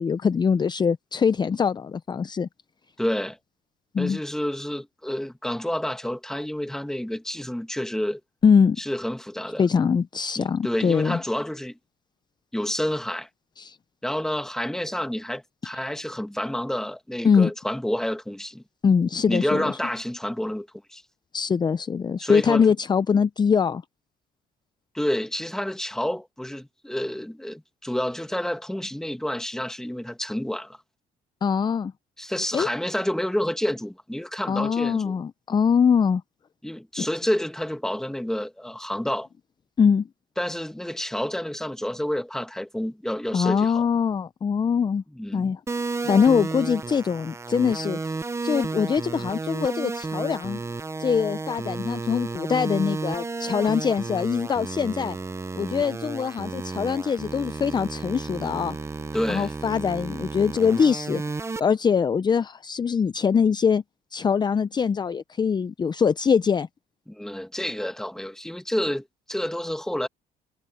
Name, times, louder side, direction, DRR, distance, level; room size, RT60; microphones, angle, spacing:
voice 1, 0.0-2.5 3.9-4.2 8.4-8.8 9.6-11.2 13.6-13.8 17.2-17.5 18.8-19.7 21.3-23.8 31.4-31.9 32.5-32.7 34.5-36.2 37.0-37.1 39.8-40.1 43.3-45.0 45.3-45.6 46.0-48.2 48.4-50.6 51.0-55.2 55.6-58.8 59.3-61.2 61.6-63.8 64.1-66.7, left 6 dB, 25° left, 0.5 m, -23 dB
voice 2, 3.0-3.4 4.0-8.2 8.8-9.6 10.4-11.8 12.5-13.3 14.0-18.6 19.3-21.0 22.2-22.7 24.9-30.8 32.2-35.2 36.6-39.3 40.4-43.9 45.1-45.5 59.1-59.5 67.1-70.1, left 1 dB, 5° left, 1.4 m, -29 dB
sound 1, 45.7-61.6, right 3 dB, 15° right, 0.7 m, -32 dB
cardioid pair, 110°, 17 cm